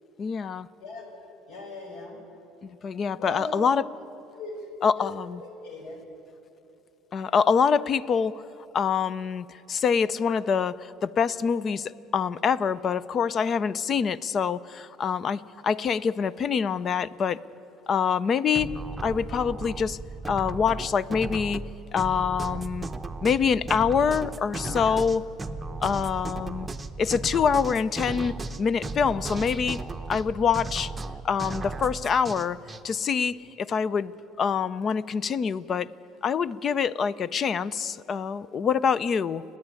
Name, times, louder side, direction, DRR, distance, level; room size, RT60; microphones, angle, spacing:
voice 1, 0.2-0.7 2.6-3.8 4.8-5.4 7.1-8.4 8.7-17.4 17.9-18.7 19.0-20.0 20.2-21.6 21.9-22.9 23.2-25.2 25.8-26.7 27.0-29.8 30.1-30.9 31.2-32.6 32.8-34.1 34.4-35.9 36.2-39.4, left 6 dB, 35° left, 18 dB, 0.5 m, -25 dB
voice 2, 1.5-2.2 3.1-3.6 4.4-4.5 4.9-5.1 5.4-6.0, left 3 dB, 70° left, 2 dB, 5.0 m, -38 dB
sound 1, 18.5-32.8, right 3 dB, 15° right, 0.8 m, -35 dB
29.0 x 9.9 x 9.5 m, 3.0 s
cardioid pair, 130°, 0 cm